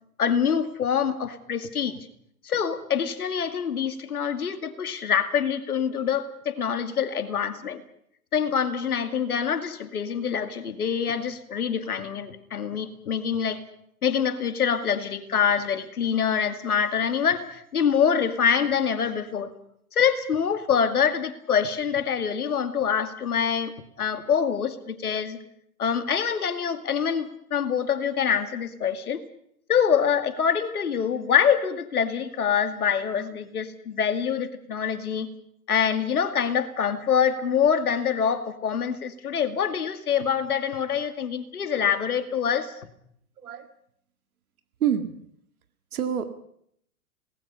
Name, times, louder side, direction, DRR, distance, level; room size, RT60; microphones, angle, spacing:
voice 1, 0.2-2.0 2.4-7.8 8.3-13.6 14.0-19.5 19.9-25.4 25.8-29.3 29.7-35.3 35.7-42.7, left 7 dB, 80° left, 9 dB, 2.4 m, -25 dB
voice 2, 43.4-43.7 44.8-45.2 45.9-46.4, right 9 dB, 75° right, 8 dB, 2.2 m, -27 dB
27.5 x 19.5 x 5.6 m, 0.70 s
hypercardioid pair, 110°, 44 cm